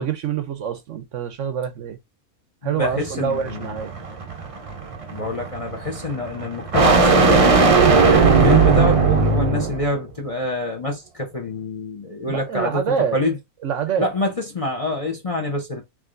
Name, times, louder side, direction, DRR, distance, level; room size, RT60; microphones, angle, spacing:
voice 1, 0.0-2.0 2.6-3.9 12.3-13.2 13.6-14.1, right 7 dB, 65° right, 0.9 m, -26 dB
voice 2, 2.6-3.7 5.1-7.5 8.0-12.8 13.1-13.4 14.0-15.8, left 2 dB, 30° left, 0.7 m, -26 dB
sound 1, 2.9-9.9, right 4 dB, 40° right, 0.5 m, -18 dB
4.8 x 3.1 x 2.5 m
omnidirectional pair, 1.5 m